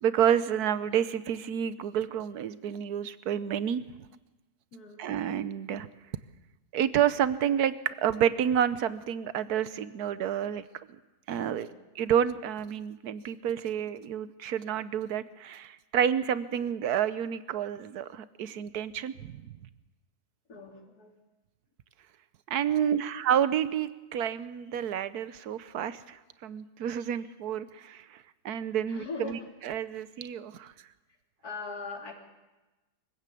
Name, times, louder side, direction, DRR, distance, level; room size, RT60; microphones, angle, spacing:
voice 1, 0.0-3.8 5.0-5.9 6.7-10.6 11.3-11.7 11.9-19.7 22.5-30.7, right 9 dB, 80° right, 15 dB, 1.4 m, -29 dB
voice 2, 4.7-5.1 11.5-11.7 20.5-21.1 22.7-23.1 28.9-29.4 31.4-32.1, left 4 dB, 80° left, 1 dB, 3.7 m, -40 dB
23.0 x 15.5 x 8.4 m, 1.1 s
omnidirectional pair, 1.6 m